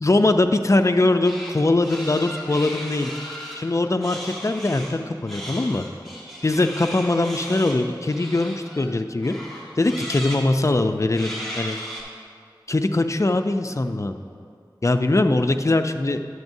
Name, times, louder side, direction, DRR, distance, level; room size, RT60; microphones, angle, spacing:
voice 1, 0.0-3.1 3.5-5.9 6.4-9.3 9.8-11.8 12.7-14.2 14.8-16.2, left 2 dB, 40° left, 7 dB, 0.4 m, -21 dB
sound 1, 1.2-1.5 1.8-3.6 4.0-4.9 5.3-8.9 9.2-10.4 11.1-12.0, equal, ahead, 1.9 m, -36 dB
10.5 x 7.9 x 2.7 m, 2.3 s
wide cardioid pair, 40°, 8 cm